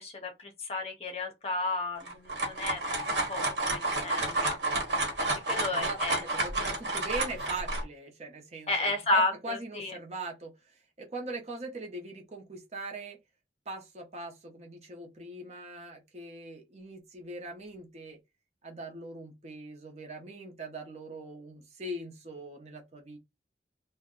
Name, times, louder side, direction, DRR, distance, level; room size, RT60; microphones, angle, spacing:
voice 1, 0.0-2.8 3.3-4.6 5.4-6.2 8.7-9.9, left 2 dB, 35° left, 0.7 m, -32 dB
sound 1, 2.0-7.8, right 2 dB, 80° right, 1.0 m, -30 dB
voice 2, 5.7-13.2 13.7-18.2 18.6-23.2, right 2 dB, 35° right, 0.8 m, -41 dB
2.6 x 2.1 x 3.6 m
head